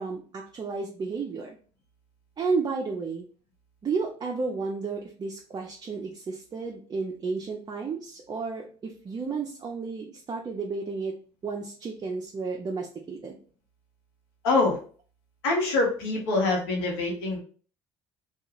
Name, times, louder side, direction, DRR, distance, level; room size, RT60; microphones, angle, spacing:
voice 1, 0.0-1.6 2.4-3.3 3.8-11.2 11.4-13.4, right 4 dB, 30° right, 1 dB, 0.5 m, -32 dB
voice 2, 14.4-14.8 15.4-17.4, left 3 dB, 80° left, 0 dB, 0.9 m, -25 dB
2.4 x 2.3 x 3.0 m, 0.41 s
hypercardioid pair, 60°, 14 cm